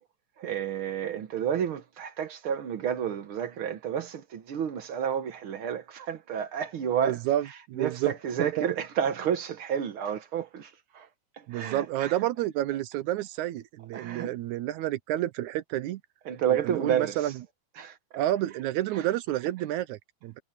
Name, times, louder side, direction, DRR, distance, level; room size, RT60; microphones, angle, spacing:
voice 1, 0.4-7.2 7.7-11.1 11.4-12.2 13.9-14.3 16.2-17.3 17.8-18.0 18.9-19.1, right 8 dB, 60° right, 1.5 m, -30 dB
voice 2, 7.0-8.1 8.6-8.7 11.5-16.0 16.7-17.3 18.1-20.4, right 14 dB, 80° right, 2.1 m, -29 dB
omnidirectional pair, 3.5 m